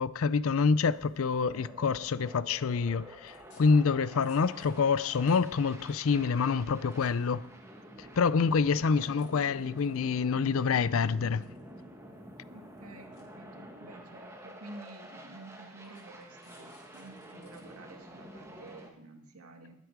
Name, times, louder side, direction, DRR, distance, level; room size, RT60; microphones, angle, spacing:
voice 1, 0.0-7.5 8.0-11.5, left 5 dB, 70° left, 0.5 m, -27 dB
sound 1, 0.5-18.9, equal, 10° right, 1.4 m, -49 dB
sound 2, 2.3-2.6 3.3-3.6 4.2-5.6 5.9-6.0 6.7-7.6 8.1-8.6 9.1-9.2 9.5-10.2 11.0-11.9 12.1-12.2 12.7-12.8 13.1-13.2 14.1-14.2 14.8-14.9 15.8-17.6 18.0-18.1, left 5 dB, 90° left, 3.8 m, -63 dB
voice 2, 8.4-8.8 12.5-19.7, right 2 dB, 85° right, 2.0 m, -51 dB
20.0 x 8.4 x 4.7 m
head